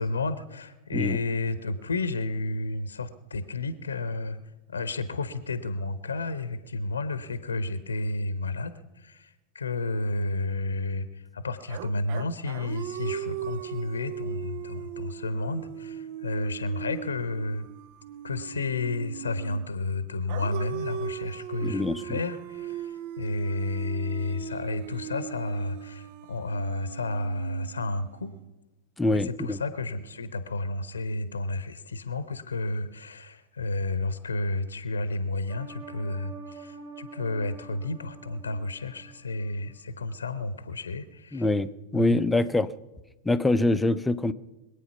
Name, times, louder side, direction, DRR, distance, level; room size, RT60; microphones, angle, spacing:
voice 1, 0.0-4.4 4.7-17.7 18.2-28.3 29.1-41.5 41.9-42.2, left 2 dB, 75° left, 14 dB, 0.9 m, -31 dB
sound 1, 11.7-19.7 20.3-28.4, right 10 dB, 45° right, 0.5 m, -38 dB
voice 2, 21.6-22.2 29.0-29.6 41.3-42.7 43.2-44.3, left 2 dB, 5° left, 12 dB, 0.7 m, -25 dB
sound 2, 35.5-39.7 40.1-40.2, right 4 dB, 70° right, 2.6 m, -46 dB
23.5 x 9.0 x 5.8 m, 1.0 s
figure-of-eight pair, 90°, 0 cm